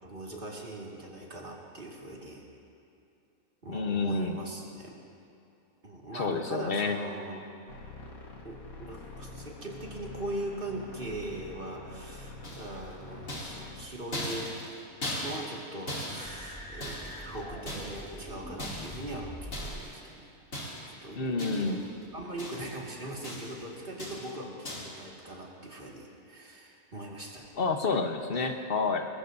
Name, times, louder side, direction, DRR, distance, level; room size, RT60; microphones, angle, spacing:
voice 1, 0.0-2.4 3.6-5.0 5.8-7.5 8.4-14.5 15.2-17.0 17.3-20.3 20.9-27.5 28.3-28.5, right 1 dB, 40° right, -3 dB, 2.2 m, -40 dB
voice 2, 3.7-4.4 6.1-7.0 21.2-21.8 27.6-29.1, left 4 dB, 45° left, 5 dB, 1.1 m, -29 dB
sound 1, 7.7-13.9, left 2 dB, 80° left, 2.1 m, -46 dB
sound 2, 12.4-12.9 13.3-15.6 15.9-17.3 17.7-18.2 18.6-19.1 19.5-19.9 20.5-21.0 21.4-21.9 22.1-22.8 23.2-23.6 24.0-24.4 24.6-25.0, left 1 dB, 65° left, 3.1 m, -39 dB
sound 3, 16.2-19.8, equal, 5° left, 1.3 m, -43 dB
21.0 x 21.0 x 2.7 m, 2.7 s
omnidirectional pair, 1.5 m